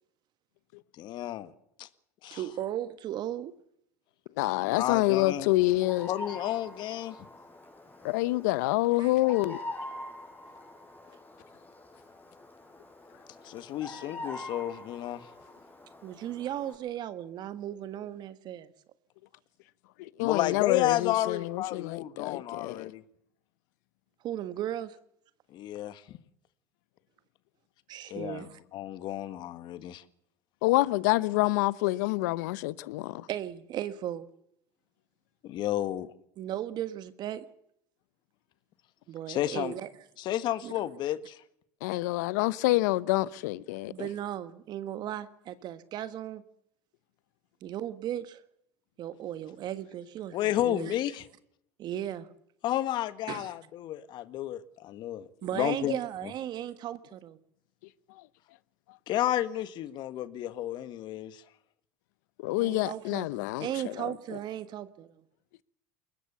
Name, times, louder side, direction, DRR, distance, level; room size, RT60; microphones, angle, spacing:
voice 1, 1.0-1.5 1.8-1.9 2.2-2.4 4.6-5.5 6.1-7.2 13.4-15.3 20.2-23.0 25.5-26.2 28.1-30.0 35.4-36.1 39.3-39.7 40.2-41.4 50.3-51.3 52.6-56.0 59.1-61.4, left 13 dB, 55° left, 1.7 m, -32 dB
voice 2, 2.3-3.6 9.0-9.1 16.0-18.7 24.2-25.0 27.9-28.6 33.3-34.2 36.4-37.4 39.1-39.9 40.6-40.7 43.9-46.4 47.6-48.4 49.0-50.4 50.6-50.9 51.8-52.3 53.3-53.5 55.4-57.4 62.6-65.1, right 11 dB, 50° right, 1.4 m, -36 dB
voice 3, 4.4-6.1 8.0-9.6 20.0-22.9 30.6-33.3 41.8-44.1 62.4-64.1, left 19 dB, 75° left, 0.9 m, -27 dB
Bird vocalization bird call bird song, 4.9-16.7, left 2 dB, 20° left, 7.3 m, -45 dB
22.0 x 19.5 x 7.0 m
supercardioid pair, 95°, 9 cm